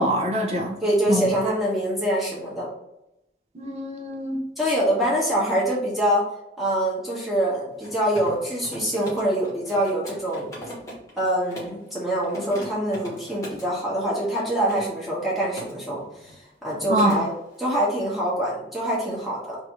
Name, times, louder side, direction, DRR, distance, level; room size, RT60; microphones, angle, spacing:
voice 1, 0.0-0.8 1.1-1.2 3.5-4.4 16.9-17.2, right 1 dB, 35° right, 0.7 m, -24 dB
voice 2, 0.8-2.7 4.6-6.2 6.6-10.5 11.2-16.3 16.6-17.3 17.6-19.6, right 1 dB, ahead, 1.2 m, -24 dB
Mechanisms, 7.7-11.8 12.2-13.7 14.3-15.7 16.0-16.4 16.6-17.2, equal, 20° left, 1.1 m, -40 dB
3.3 x 2.7 x 4.6 m
head